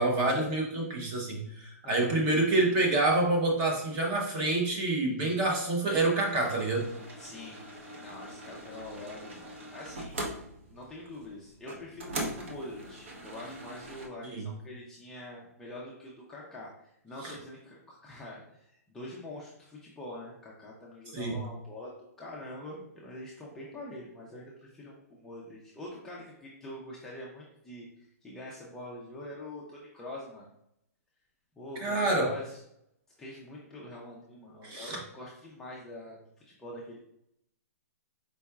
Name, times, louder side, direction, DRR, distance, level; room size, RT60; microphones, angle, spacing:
voice 1, 0.0-6.8 14.3-14.4 17.2-17.3 21.1-21.3 31.8-32.3 34.6-35.0, right 2 dB, 25° right, 0 dB, 0.8 m, -27 dB
voice 2, 1.8-2.2 7.2-7.7 8.0-10.2 10.7-21.9 22.2-30.5 31.6-32.6 33.2-36.2 36.5-37.0, left 1 dB, 5° left, -5 dB, 0.4 m, -45 dB
sound 1, 6.2-14.1, right 1 dB, 50° right, 0.9 m, -42 dB
4.6 x 4.1 x 2.3 m, 0.76 s
hypercardioid pair, 165°, 9 cm